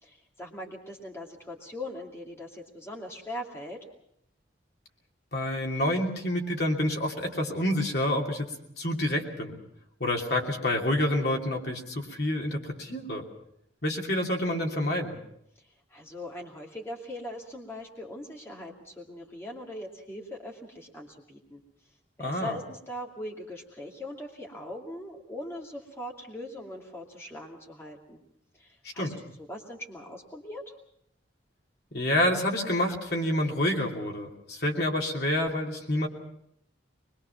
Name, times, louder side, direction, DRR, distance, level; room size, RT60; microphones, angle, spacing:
voice 1, 0.0-3.9 15.6-21.6 22.2-28.2 28.5-30.7, left 1 dB, 15° left, -2 dB, 2.5 m, -41 dB
voice 2, 5.3-8.5 8.8-9.6 10.0-13.2 13.8-15.2 22.2-22.6 29.0-29.2 31.9-36.1, left 1 dB, 55° left, 0 dB, 3.0 m, -28 dB
24.0 x 22.0 x 5.9 m, 0.73 s
head